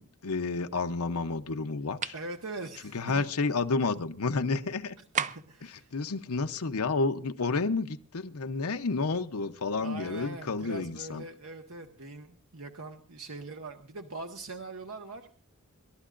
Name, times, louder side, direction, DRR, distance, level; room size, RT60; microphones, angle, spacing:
voice 1, 0.0-2.1 2.9-5.0 5.6-11.2, left 3 dB, 80° left, 0.8 m, -30 dB
sound 1, 2.0-2.3 5.1-5.6, right 7 dB, 35° right, 0.6 m, -32 dB
voice 2, 2.1-3.3 5.2-5.9 9.8-15.3, right 2 dB, 75° right, 1.4 m, -42 dB
27.5 x 12.5 x 2.5 m
head